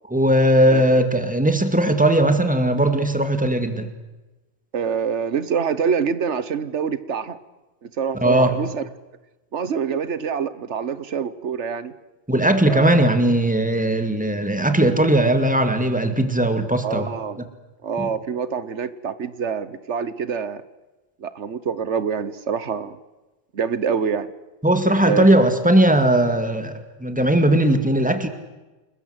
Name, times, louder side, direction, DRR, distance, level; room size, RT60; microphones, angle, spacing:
voice 1, 0.1-3.9 8.1-8.6 12.3-17.1 18.0-18.1 24.6-28.3, right 1 dB, 5° right, 7 dB, 2.2 m, -18 dB
voice 2, 4.7-7.4 7.8-8.9 9.5-11.9 12.7-12.9 16.8-17.4 17.8-20.6 21.2-23.0 23.5-24.3 25.0-25.2, right 6 dB, 90° right, 14 dB, 1.4 m, -25 dB
30.0 x 20.5 x 8.2 m, 1.1 s
omnidirectional pair, 1.1 m